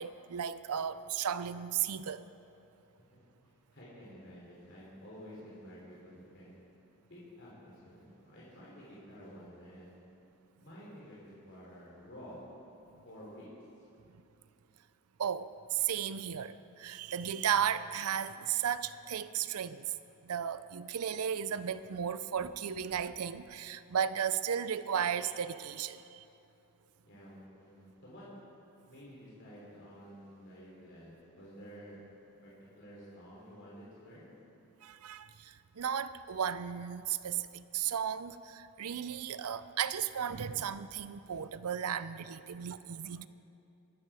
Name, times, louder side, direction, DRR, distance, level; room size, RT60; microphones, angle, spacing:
voice 1, 0.0-2.2 15.2-19.9 20.2-26.2 34.8-43.3, right 8 dB, 90° right, 14 dB, 0.5 m, -35 dB
voice 2, 3.1-6.6 7.1-10.0 10.6-12.4 13.0-13.5 27.0-28.3 28.9-32.0 32.4-34.3, equal, 55° left, -7 dB, 3.5 m, -51 dB
20.5 x 12.0 x 5.0 m, 2.8 s
head